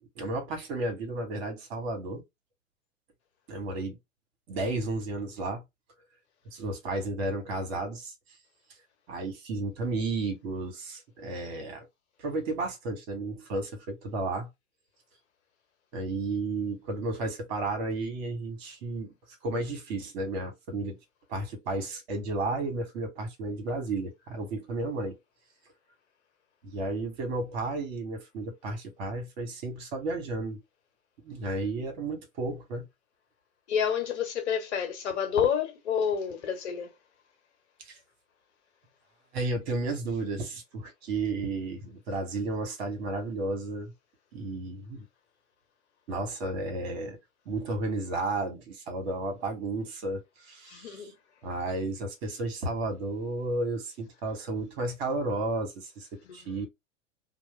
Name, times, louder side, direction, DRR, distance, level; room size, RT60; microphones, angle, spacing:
voice 1, 0.2-2.2 3.5-4.0 4.5-5.6 6.5-8.1 9.1-11.9 12.2-14.5 15.9-19.1 19.4-21.0 21.3-25.2 26.6-30.6 31.2-32.9 37.8-38.0 39.3-43.9 44.3-45.1 46.1-47.2 47.5-51.1 51.4-56.1 56.3-56.7, right 2 dB, 50° right, 1.2 m, -33 dB
voice 2, 33.7-36.9 50.7-51.1 56.5-56.7, left 7 dB, 60° left, 1.1 m, -29 dB
2.4 x 2.1 x 3.1 m
figure-of-eight pair, 95°, 39 cm